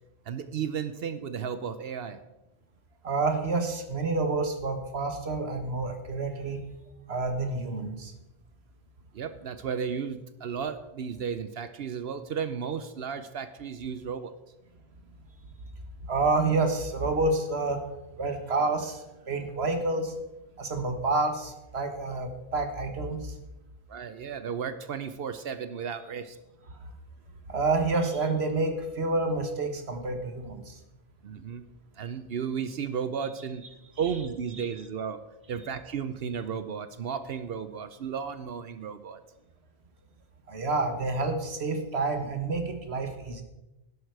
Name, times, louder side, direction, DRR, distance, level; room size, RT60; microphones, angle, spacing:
voice 1, 0.3-2.2 9.1-14.3 23.9-26.4 31.2-31.6 32.0-33.6 34.0-35.2 35.5-39.2, right 7 dB, 70° right, 11 dB, 0.9 m, -34 dB
voice 2, 3.0-6.6 7.1-8.1 16.1-17.8 18.2-20.1 20.6-23.3 26.8-26.9 27.5-30.8 34.6-34.7 40.5-43.4, right 3 dB, 90° right, 7 dB, 1.7 m, -28 dB
12.0 x 11.5 x 4.7 m, 0.99 s
omnidirectional pair, 1.0 m